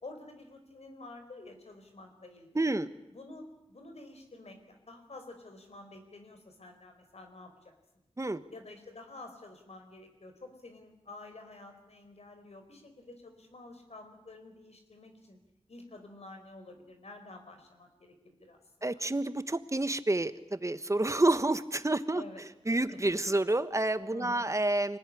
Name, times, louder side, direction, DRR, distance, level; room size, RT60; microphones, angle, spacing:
voice 1, 0.0-2.7 3.1-7.8 8.5-15.4 15.7-18.6 18.9-19.0 22.1-22.4 22.9-23.0 24.1-24.5, left 2 dB, 90° left, 5 dB, 4.5 m, -49 dB
voice 2, 2.5-2.9 8.2-8.4 18.8-22.2 22.7-25.0, right 2 dB, 30° right, 12 dB, 1.3 m, -29 dB
26.0 x 19.5 x 9.9 m, 0.89 s
wide cardioid pair, 75°, 11 cm